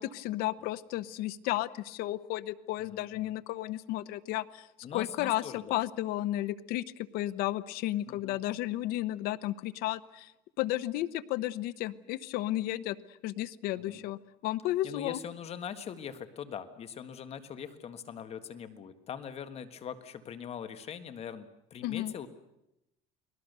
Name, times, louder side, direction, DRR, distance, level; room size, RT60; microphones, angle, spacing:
voice 1, 0.0-4.7 4.9-10.3 10.6-13.0 13.2-15.2 21.8-22.1, left 15 dB, 65° left, 16 dB, 0.9 m, -33 dB
voice 2, 2.8-3.4 4.8-5.8 8.1-8.4 13.8-14.0 14.8-22.3, left 8 dB, 40° left, 10 dB, 1.7 m, -42 dB
30.0 x 20.0 x 6.8 m, 0.89 s
cardioid pair, 130°, 17 cm